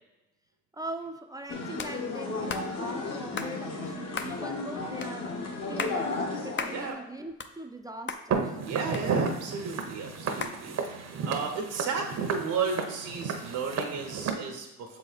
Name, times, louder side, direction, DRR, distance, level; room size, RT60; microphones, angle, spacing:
voice 1, 0.7-5.4 5.7-6.2 6.4-8.5, right 1 dB, 10° right, 5 dB, 0.5 m, -41 dB
sound 1, 1.5-6.9, left 3 dB, 55° left, 1.4 m, -34 dB
sound 2, 1.8-1.9 2.5-2.7 3.4-3.5 4.1-4.4 5.0-5.1 5.6-6.0 6.6-6.8 7.2-7.8 8.1-8.2 8.9-9.5 10.4-10.6, left 5 dB, 40° left, 0.6 m, -35 dB
Walk footsteps, 8.3-14.3, right 5 dB, 60° right, 0.9 m, -32 dB
voice 2, 8.6-15.0, right 5 dB, 90° right, 2 dB, 1.2 m, -34 dB
6.7 x 4.1 x 4.1 m, 0.98 s
cardioid pair, 90°, 30 cm